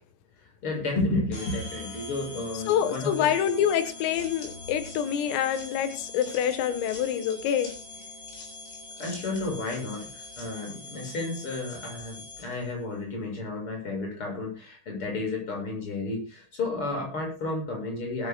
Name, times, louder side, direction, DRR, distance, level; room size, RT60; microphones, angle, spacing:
voice 1, 0.6-3.3 9.0-18.3, left 2 dB, 25° left, 1 dB, 7.9 m, -32 dB
sound 1, 1.3-12.7, left 3 dB, 50° left, 7.8 m, -43 dB
voice 2, 2.7-7.7, left 9 dB, 90° left, 9 dB, 4.1 m, -26 dB
sound 2, 3.4-12.6, left 4 dB, 75° left, 8.7 m, -49 dB
21.0 x 14.0 x 2.4 m, 0.33 s
omnidirectional pair, 5.7 m